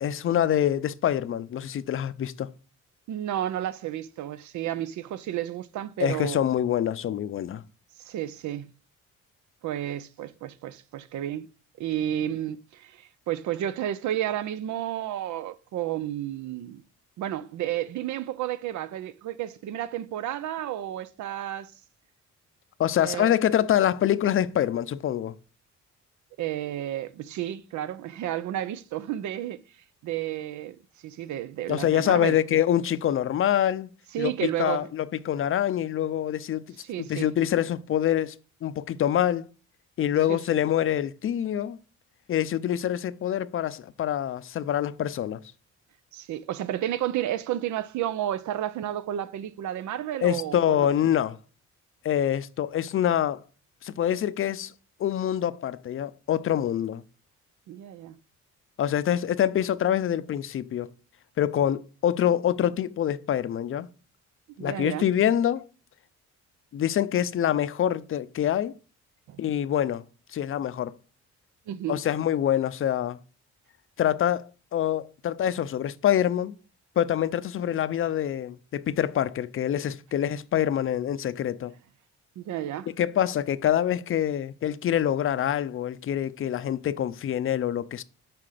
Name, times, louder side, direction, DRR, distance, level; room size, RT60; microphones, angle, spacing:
voice 1, 0.0-2.5 6.0-7.6 22.8-25.3 31.7-33.9 34.2-36.6 37.0-38.3 38.6-39.5 40.0-41.8 42.3-45.4 50.2-51.4 52.0-53.4 53.8-54.7 55.0-57.0 58.8-60.9 61.4-63.9 64.6-65.6 66.7-68.7 69.4-70.0 70.3-70.9 71.9-73.2 74.0-76.6 77.0-81.7 83.0-88.0, left 10 dB, 45° left, 0.5 m, -25 dB
voice 2, 3.1-6.4 8.0-8.7 9.6-11.5 11.8-16.8 17.2-21.7 23.0-23.3 26.4-29.6 30.0-30.8 31.0-32.4 34.1-34.9 36.8-37.3 40.3-40.6 46.1-50.9 57.7-58.2 64.6-65.1 69.3-69.4 71.7-72.0 82.4-82.9, right 12 dB, 70° right, 0.6 m, -31 dB
5.9 x 4.3 x 4.9 m
cardioid pair, 90°, 30 cm